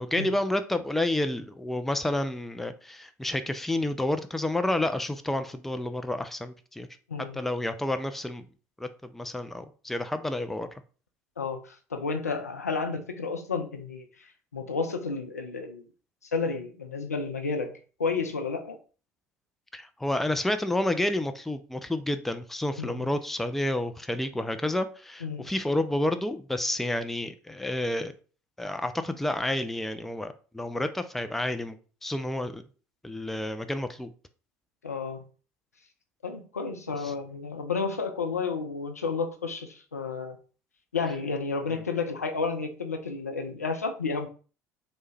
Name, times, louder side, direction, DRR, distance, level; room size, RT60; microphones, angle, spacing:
voice 1, 0.0-6.9 7.3-8.4 8.8-8.9 9.1-10.7 19.7-28.1 28.6-31.7 32.0-32.6 33.0-34.1, left 1 dB, 5° left, 0.3 m, -30 dB
voice 2, 7.1-7.4 11.4-15.8 16.2-18.8 22.8-23.1 25.2-25.5 34.8-35.2 36.2-40.4 40.9-44.3, left 4 dB, 85° left, 0.4 m, -31 dB
3.1 x 2.1 x 3.2 m
figure-of-eight pair, 60°, 8 cm